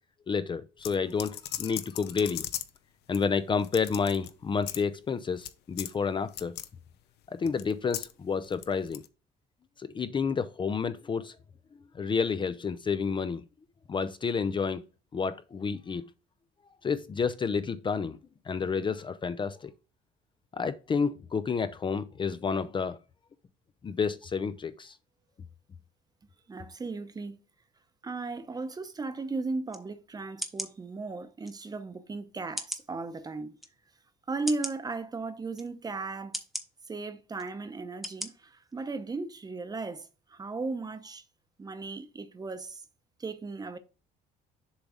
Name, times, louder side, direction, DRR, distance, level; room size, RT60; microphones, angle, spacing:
voice 1, 0.3-2.5 3.1-6.5 7.3-9.0 9.8-11.3 11.9-13.4 13.9-14.8 15.1-16.1 16.8-18.2 18.5-19.7 20.5-23.0 23.8-24.9, left 5 dB, 30° left, 0.5 m, -30 dB
sound 1, 0.8-2.8 3.1-3.2 3.6-4.3 4.6-4.8 5.4-5.5 5.8-5.9 6.3-6.7 7.5-8.1 8.4-9.1, left 13 dB, 80° left, 0.7 m, -37 dB
voice 2, 26.5-27.4 28.0-33.5 34.3-36.4 36.9-41.2 41.6-42.8 43.2-43.8, right 3 dB, 25° right, 0.9 m, -36 dB
sound 2, 29.7-29.8 30.4-30.7 31.5-31.6 32.6-32.9 33.6-33.7 34.5-34.8 35.5-35.7 36.3-36.7 37.4-37.5 38.0-38.3 38.7-38.8, equal, ahead, 1.1 m, -36 dB
7.2 x 3.9 x 4.9 m
cardioid pair, 110°, 17 cm